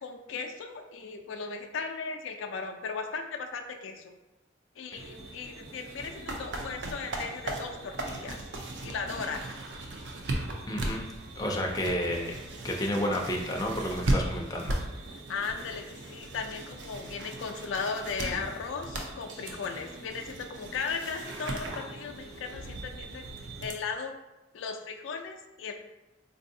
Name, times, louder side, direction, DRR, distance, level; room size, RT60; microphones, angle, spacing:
voice 1, 0.0-4.1 4.8-8.4 8.8-9.4 15.3-23.2 23.6-24.1 24.5-25.7, left 5 dB, 85° left, 4 dB, 0.4 m, -37 dB
sound 1, 4.9-23.7, right 1 dB, 65° right, 0.5 m, -37 dB
voice 2, 10.7-11.0 11.4-12.4 12.6-14.8, equal, 20° left, 0 dB, 0.4 m, -31 dB
4.0 x 2.6 x 2.6 m, 1.0 s
head